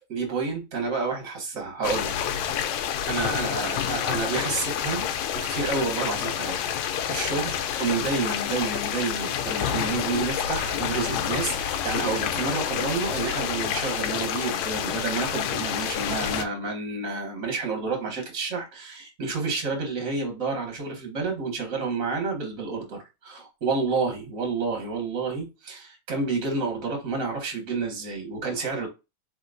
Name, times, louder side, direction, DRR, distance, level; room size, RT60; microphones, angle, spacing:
voice 1, 0.1-5.1 5.3-28.9, right 4 dB, 35° right, 1.6 m, -30 dB
sound 1, 1.8-16.5, left 9 dB, 75° left, 1.8 m, -28 dB
4.4 x 4.3 x 2.5 m
omnidirectional pair, 3.5 m